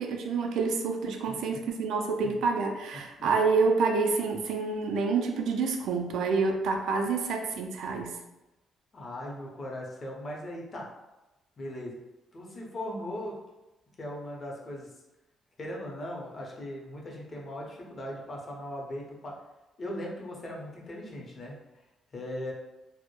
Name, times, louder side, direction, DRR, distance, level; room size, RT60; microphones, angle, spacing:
voice 1, 0.0-8.1, right 4 dB, 80° right, 3 dB, 0.3 m, -28 dB
voice 2, 1.2-1.6 2.2-2.4 2.9-3.0 8.9-10.9 11.6-12.0 12.3-13.4 14.0-14.9 15.6-19.3 19.8-21.5 22.1-22.5, left 1 dB, 40° left, -2 dB, 0.6 m, -38 dB
2.1 x 2.0 x 2.9 m, 1.0 s
cardioid pair, 90°, 0 cm